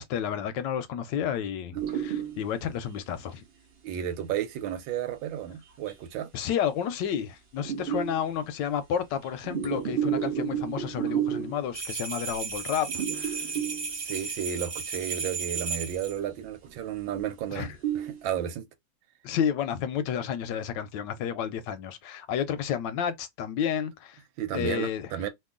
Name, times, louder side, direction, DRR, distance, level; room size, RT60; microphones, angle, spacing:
voice 1, 0.0-3.4 6.3-13.5 17.5-17.7 19.2-24.2 24.5-25.1, left 8 dB, 75° left, 1.1 m, -31 dB
more heater gurgles, 1.8-2.6 3.2-3.3 5.9-6.0 7.6-8.3 9.3-11.7 12.3-12.5 12.9-14.1 15.6-15.9 16.4-16.7 17.2-17.3 17.6-18.2, right 9 dB, 55° right, 0.6 m, -31 dB
voice 2, 3.8-6.3 13.9-18.7 24.4-25.3, right 9 dB, 80° right, 1.4 m, -33 dB
sound 1, 11.7-16.2, right 5 dB, 40° right, 1.2 m, -34 dB
3.0 x 2.6 x 3.6 m
omnidirectional pair, 2.1 m